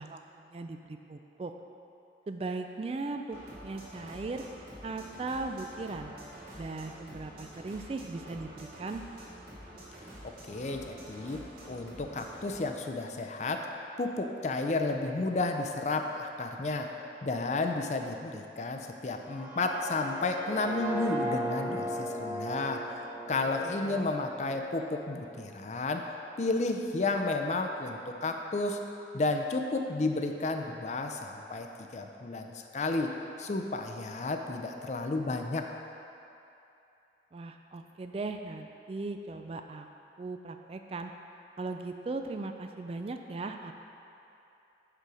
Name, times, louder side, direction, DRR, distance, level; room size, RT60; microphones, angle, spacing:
voice 1, 0.0-1.5 2.3-4.4 4.8-6.1 6.6-9.0 21.7-21.9 23.6-24.1 37.3-39.9 40.2-41.1 41.6-43.7, right 3 dB, 35° right, 6 dB, 0.3 m, -38 dB
sound 1, 3.3-12.6, equal, 55° right, 1.8 m, -48 dB
voice 2, 10.5-13.7 14.0-16.9 17.2-23.0 23.3-26.1 26.4-28.8 29.1-31.7 31.9-35.7, left 3 dB, 40° left, 4 dB, 0.5 m, -32 dB
sound 2, 19.2-25.2, equal, 10° right, 0.8 m, -37 dB
6.7 x 6.1 x 4.9 m, 2.8 s
head